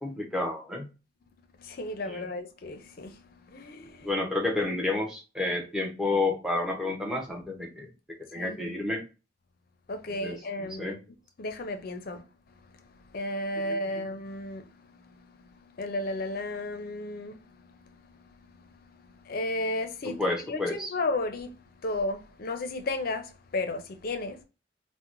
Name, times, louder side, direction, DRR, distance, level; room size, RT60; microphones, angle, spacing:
voice 1, 0.0-0.9 2.1-2.3 4.0-7.9 8.3-9.0 10.2-11.0 13.6-14.0 20.0-20.9, left 2 dB, 5° right, 0.6 m, -30 dB
voice 2, 1.6-4.1 8.4-8.8 9.9-11.0 11.4-12.3 12.7-20.2 20.5-21.6 21.8-24.4, left 2 dB, 50° left, 0.5 m, -34 dB
3.7 x 2.1 x 2.9 m
head